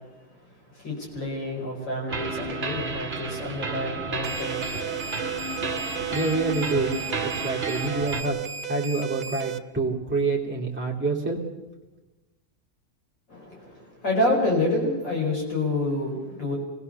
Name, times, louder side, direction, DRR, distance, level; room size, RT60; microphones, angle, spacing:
voice 1, 0.7-5.2 13.3-16.6, left 1 dB, 60° left, -1 dB, 6.1 m, -28 dB
sound 1, 2.1-8.2, right 3 dB, 30° right, 1.7 m, -32 dB
sound 2, 4.2-9.6, right 7 dB, 70° right, 1.8 m, -34 dB
voice 2, 6.1-6.9 7.2-8.4 8.7-11.4, right 3 dB, 5° right, -3 dB, 2.6 m, -27 dB
25.5 x 19.0 x 6.9 m, 1.1 s
omnidirectional pair, 2.2 m